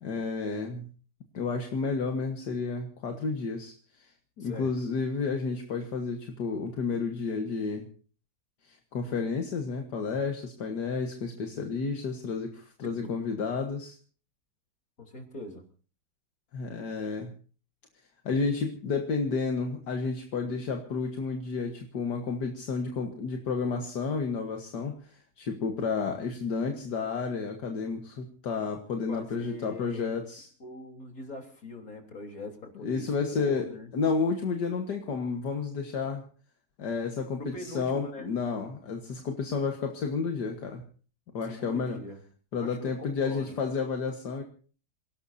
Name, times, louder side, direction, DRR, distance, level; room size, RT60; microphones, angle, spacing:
voice 1, 0.0-0.9 1.3-4.1 4.4-7.9 8.6-14.0 16.5-17.3 18.3-30.5 32.8-36.2 36.8-40.8 41.3-42.0 42.5-44.4, left 4 dB, 75° left, 4 dB, 2.1 m, -31 dB
voice 2, 4.4-4.7 13.0-13.2 15.0-15.7 29.1-30.1 30.6-33.9 37.4-38.3 41.4-42.2 42.6-43.5, left 2 dB, 55° left, 3 dB, 3.9 m, -42 dB
28.0 x 17.5 x 2.7 m, 0.40 s
omnidirectional pair, 1.8 m